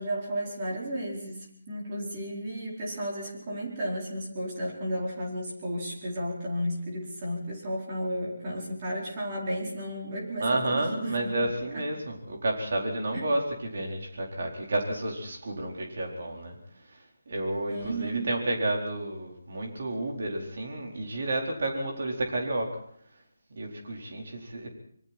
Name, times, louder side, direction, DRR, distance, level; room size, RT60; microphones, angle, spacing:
voice 1, 0.0-11.3 11.7-11.8 13.1-13.2 17.6-18.3, equal, 20° right, -3 dB, 4.5 m, -33 dB
voice 2, 10.4-13.4 13.7-16.5 17.3-22.7 23.5-24.7, right 1 dB, 45° right, 0 dB, 4.5 m, -31 dB
25.5 x 23.0 x 4.5 m, 0.64 s
hypercardioid pair, 180°, 0 cm